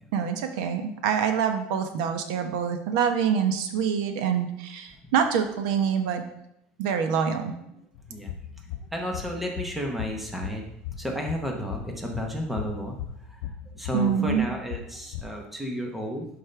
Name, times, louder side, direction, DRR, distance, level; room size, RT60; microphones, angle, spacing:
voice 1, 0.1-6.2 6.8-7.5 13.9-14.4, right 7 dB, 80° right, 6 dB, 1.0 m, -25 dB
sound 1, 7.9-15.2, left 9 dB, 75° left, 0.6 m, -38 dB
voice 2, 8.9-10.7 11.0-12.9 13.3-16.3, equal, 5° right, 1 dB, 1.0 m, -32 dB
11.0 x 5.4 x 3.3 m, 0.79 s
cardioid pair, 170°, 4 cm